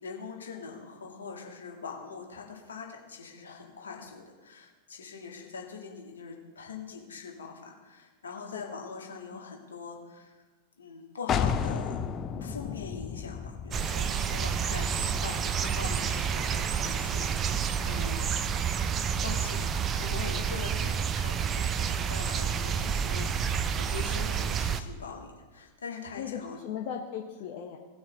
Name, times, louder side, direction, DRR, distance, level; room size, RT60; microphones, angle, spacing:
voice 1, 0.0-10.4 10.8-12.0 12.4-18.3 19.2-26.6, left 5 dB, 70° left, 0 dB, 2.0 m, -43 dB
sound 1, 11.3-16.8, left 7 dB, 25° left, 0.6 m, -34 dB
sound 2, 13.7-24.8, right 7 dB, 25° right, 0.6 m, -29 dB
voice 2, 26.2-27.8, left 8 dB, 45° left, 1 dB, 1.0 m, -38 dB
18.0 x 6.2 x 4.2 m, 1.3 s
figure-of-eight pair, 90°, 0 cm